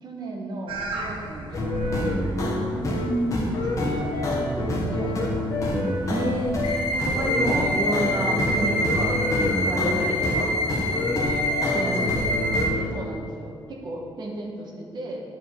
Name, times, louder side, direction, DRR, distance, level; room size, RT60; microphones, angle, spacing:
voice 1, 0.0-2.2 2.5-2.7 3.4-5.7 7.1-7.3 7.8-8.0 11.9-12.1 12.9-15.2, right 2 dB, 55° right, -1 dB, 1.3 m, -37 dB
sound 1, 0.7-7.2, right 2 dB, 75° right, 0.9 m, -36 dB
sound 2, 1.5-12.9, left 1 dB, 35° left, 1.2 m, -27 dB
voice 2, 2.7-3.5 6.1-6.5 6.9-9.2 9.4-10.5 11.6-12.2, right 1 dB, 30° right, -3 dB, 0.9 m, -29 dB
sound 3, 6.6-12.6, equal, 85° left, 0.9 m, -26 dB
11.5 x 4.9 x 4.6 m, 2.2 s
wide cardioid pair, 175°, 9 cm